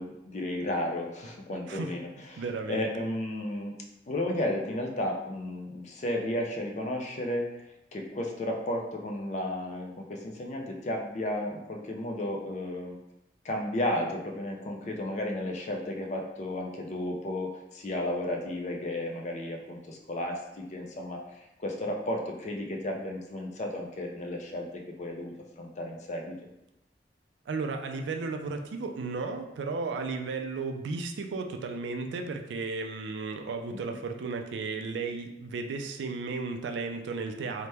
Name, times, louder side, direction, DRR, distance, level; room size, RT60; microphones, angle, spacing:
voice 1, 0.0-3.7 4.1-13.0 13.4-26.4 33.7-34.0, left 1 dB, 40° left, 1 dB, 0.4 m, -33 dB
voice 2, 2.4-2.9 27.5-37.7, right 4 dB, 90° right, 5 dB, 0.3 m, -34 dB
2.8 x 2.1 x 3.3 m, 0.90 s
head